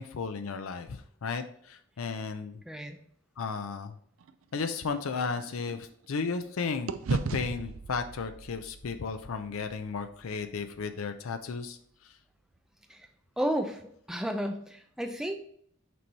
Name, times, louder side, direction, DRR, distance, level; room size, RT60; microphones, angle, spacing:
voice 1, 0.0-2.6 3.4-4.0 4.5-12.2, left 5 dB, 80° left, 8 dB, 0.5 m, -34 dB
voice 2, 2.7-3.0 12.9-13.1 13.4-13.8 14.1-15.4, equal, ahead, 5 dB, 0.5 m, -32 dB
sound 1, 4.2-6.5 6.9-11.1, right 4 dB, 75° right, 0.4 m, -38 dB
6.1 x 4.6 x 4.0 m, 0.65 s
head